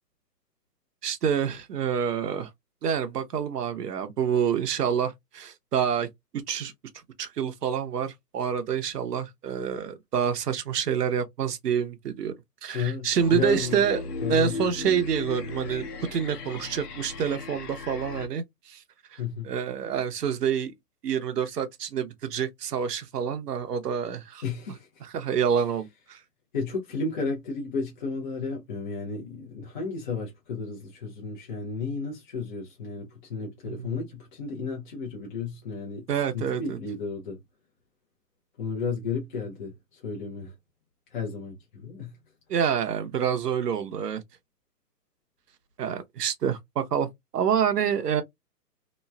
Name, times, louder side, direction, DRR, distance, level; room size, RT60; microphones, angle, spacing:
voice 1, 1.0-2.5 2.8-6.1 6.3-6.7 7.2-12.3 12.6-14.0 14.3-18.8 19.1-20.7 21.0-24.4 25.0-26.2 33.7-33.9 36.1-36.8 42.5-44.2 45.8-48.2, right 8 dB, 70° right, 0.8 m, -27 dB
voice 2, 12.7-13.9 14.2-14.7 19.2-19.5 24.4-25.0 26.5-36.1 36.3-37.4 38.6-40.5 41.1-42.2, left 4 dB, 30° left, 0.7 m, -33 dB
sound 1, 13.2-18.3, left 4 dB, 70° left, 1.0 m, -36 dB
3.0 x 2.3 x 2.2 m
hypercardioid pair, 145°, 49 cm